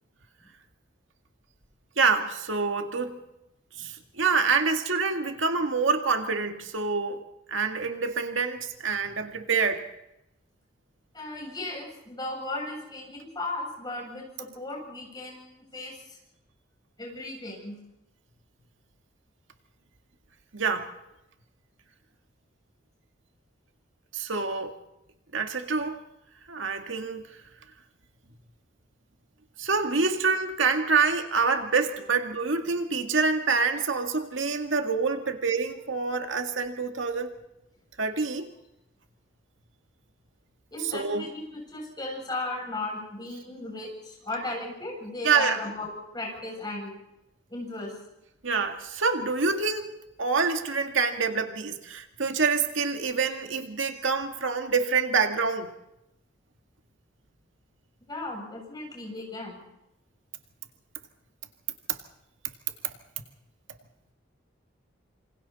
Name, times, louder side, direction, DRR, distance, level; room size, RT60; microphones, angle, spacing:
voice 1, 2.0-3.2 3.8-7.2 7.5-9.8 20.5-20.9 24.1-24.7 25.3-26.0 26.5-27.2 29.6-37.3 38.0-38.5 40.8-41.3 45.2-45.6 48.4-49.9 50.2-55.7, right 4 dB, 80° right, 5 dB, 2.0 m, -26 dB
voice 2, 11.1-16.2 17.0-17.8 40.7-46.9 47.5-48.0 58.1-59.6, left 2 dB, 20° left, 0 dB, 7.3 m, -36 dB
27.5 x 26.0 x 4.2 m, 0.89 s
head